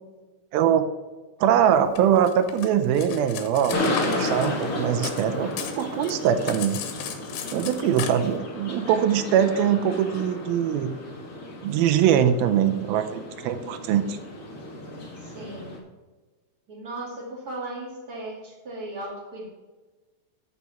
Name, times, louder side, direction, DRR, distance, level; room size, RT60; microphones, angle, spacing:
voice 1, 0.5-0.8 1.4-3.8 4.1-6.8 7.5-11.0 11.6-14.2, right 9 dB, 85° right, 10 dB, 2.5 m, -22 dB
Cutlery silverware, 1.9-5.2 5.5-8.1, left 9 dB, 85° left, 2.8 m, -36 dB
sound 1, 3.7-15.8, left 1 dB, 65° left, 0.9 m, -33 dB
voice 2, 15.2-15.8 16.7-19.5, right 2 dB, 30° right, -3 dB, 2.4 m, -36 dB
14.0 x 4.8 x 4.2 m, 1.3 s
omnidirectional pair, 4.2 m